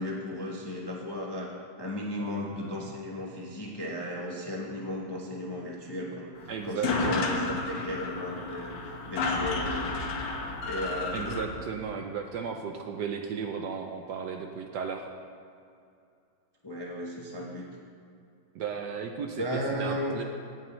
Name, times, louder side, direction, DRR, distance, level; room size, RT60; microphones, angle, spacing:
voice 1, 0.0-1.5 1.8-10.0 10.6-11.4 16.6-17.7 19.4-20.1, left 1 dB, 20° left, -2 dB, 0.6 m, -35 dB
sound 1, 6.4-6.5 6.6-11.5, left 3 dB, 70° left, 1.6 m, -31 dB
voice 2, 6.5-7.3 11.1-15.0 18.5-20.2, right 6 dB, 70° right, 3 dB, 1.1 m, -35 dB
17.0 x 7.3 x 3.1 m, 2.5 s
omnidirectional pair, 2.2 m